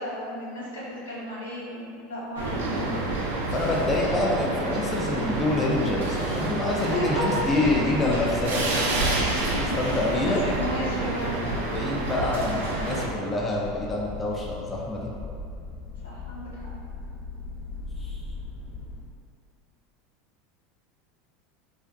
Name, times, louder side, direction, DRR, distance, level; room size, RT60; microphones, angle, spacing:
voice 1, 0.0-3.0 6.9-7.4 9.2-10.0 10.2-11.5 16.0-16.6, equal, 85° left, -7 dB, 0.6 m, -33 dB
sound 1, 2.4-13.1, right 2 dB, 75° right, 0.3 m, -28 dB
voice 2, 3.5-8.9 9.8-10.4 11.7-15.1 18.0-18.2, left 2 dB, 25° left, -3 dB, 0.4 m, -27 dB
sound 2, 7.0-19.0, left 3 dB, 40° left, 0.9 m, -40 dB
2.4 x 2.3 x 2.2 m, 2.4 s
hypercardioid pair, 80°, 0 cm